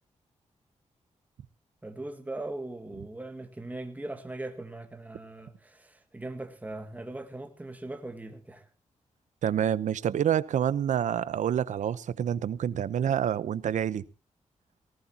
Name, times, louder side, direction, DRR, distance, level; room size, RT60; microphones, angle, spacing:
voice 1, 1.8-8.7, right 2 dB, 15° right, 2.0 m, -40 dB
voice 2, 9.4-14.0, right 9 dB, 85° right, 0.8 m, -27 dB
18.5 x 18.0 x 2.9 m
cardioid pair, 100°, 12 cm